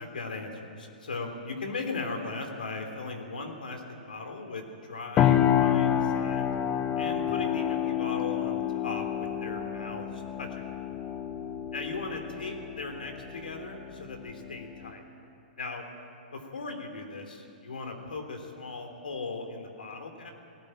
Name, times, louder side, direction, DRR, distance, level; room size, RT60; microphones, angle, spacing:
voice 1, 0.0-6.5 7.0-10.6 11.7-15.0 15.6-15.8 16.3-20.3, left 3 dB, 75° left, 4 dB, 3.3 m, -38 dB
sound 1, 5.2-14.9, left 10 dB, 25° left, 1.1 m, -29 dB
19.0 x 17.5 x 8.9 m, 2.7 s
figure-of-eight pair, 110°, 5 cm